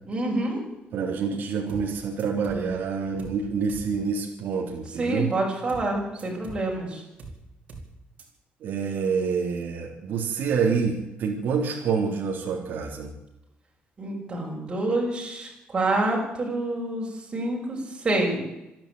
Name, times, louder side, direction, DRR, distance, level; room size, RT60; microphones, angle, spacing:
voice 1, 0.1-0.6 5.0-7.0 14.0-18.4, right 2 dB, 25° right, -2 dB, 6.4 m, -27 dB
voice 2, 0.9-5.3 8.6-13.1, right 5 dB, 60° right, 0 dB, 3.7 m, -27 dB
sound 1, 1.7-1.9 2.2-2.7 3.2-3.4 3.7-3.9 5.7-5.9 6.2-6.7 7.2-7.4 7.7-7.9 8.2-8.3, right 3 dB, 40° right, 4.9 m, -42 dB
27.0 x 10.5 x 9.3 m, 0.92 s
cardioid pair, 170°, 4 cm